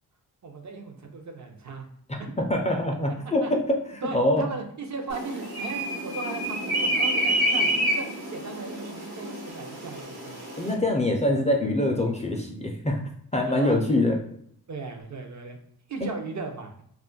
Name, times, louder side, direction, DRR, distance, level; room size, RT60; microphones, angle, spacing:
voice 1, 0.4-1.9 2.2-2.3 3.2-3.5 4.0-10.4 10.7-10.8 13.5-14.0 14.7-15.6 15.9-16.8, right 4 dB, 50° right, 3 dB, 0.6 m, -37 dB
voice 2, 2.1-3.8 4.1-4.4 10.6-13.0 13.3-14.2 16.0-16.1, left 1 dB, 20° left, 1 dB, 0.4 m, -24 dB
sound 1, 5.1-10.7, right 1 dB, 75° right, 1.1 m, -28 dB
2.4 x 2.1 x 3.7 m, 0.66 s
cardioid pair, 75°, 38 cm